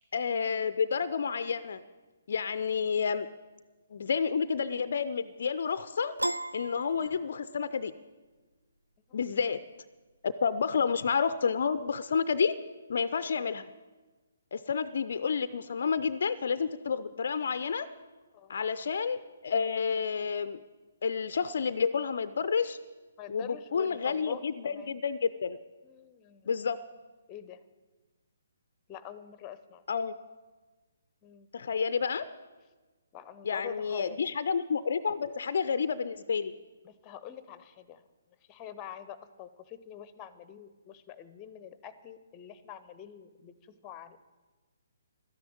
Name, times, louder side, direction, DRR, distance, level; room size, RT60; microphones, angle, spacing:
voice 1, 0.1-1.8 2.3-3.3 3.9-6.2 6.5-7.9 9.1-9.6 10.2-12.6 12.9-13.7 14.5-17.9 18.5-20.6 21.0-22.8 23.3-25.6 26.5-26.8 29.9-30.1 31.5-32.2 33.4-36.5, left 6 dB, 50° left, 14 dB, 0.5 m, -30 dB
Piano, 6.2-7.7, right 1 dB, 85° right, 0.4 m, -35 dB
voice 2, 18.3-18.7 23.2-24.9 25.8-26.5 27.3-27.6 28.9-29.8 31.2-31.5 33.1-34.2 36.8-38.0 38.5-44.2, left 9 dB, 20° left, 15 dB, 0.7 m, -46 dB
12.5 x 10.5 x 8.7 m, 1.2 s
figure-of-eight pair, 130°, 0 cm